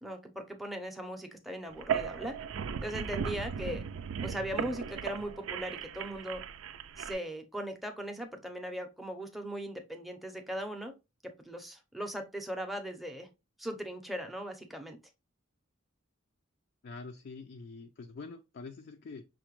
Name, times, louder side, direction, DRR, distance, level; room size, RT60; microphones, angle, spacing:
voice 1, 0.0-2.4 2.8-3.8 4.2-6.4 7.0-10.9 11.4-13.3 13.6-15.0, equal, ahead, 5 dB, 0.6 m, -39 dB
sound 1, 1.7-7.1, right 7 dB, 80° right, 0.4 m, -37 dB
voice 2, 16.8-19.2, left 4 dB, 50° left, 4 dB, 0.4 m, -45 dB
5.7 x 2.1 x 3.0 m, 0.25 s
head